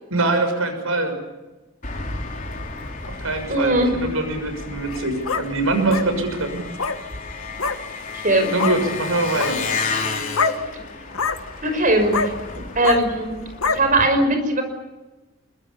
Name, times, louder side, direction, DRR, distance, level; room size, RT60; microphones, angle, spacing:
voice 1, 0.1-1.2 3.1-6.7 8.5-9.6, right 2 dB, 80° right, 7 dB, 6.4 m, -23 dB
Engine, 1.8-14.0, left 4 dB, 40° left, 4.2 m, -32 dB
voice 2, 3.5-3.9 8.1-8.5 11.6-12.3 12.8-14.6, right 1 dB, 40° right, 7 dB, 5.7 m, -20 dB
sound 1, 4.8-5.4 5.9-6.1 6.7-7.0 7.6-7.8 8.6-8.8 9.3-9.5 10.3-10.6 11.1-11.4 12.1-12.3 12.8-13.0 13.6-13.8, left 4 dB, 85° left, 1.8 m, -23 dB
26.0 x 23.0 x 7.1 m, 1.1 s
head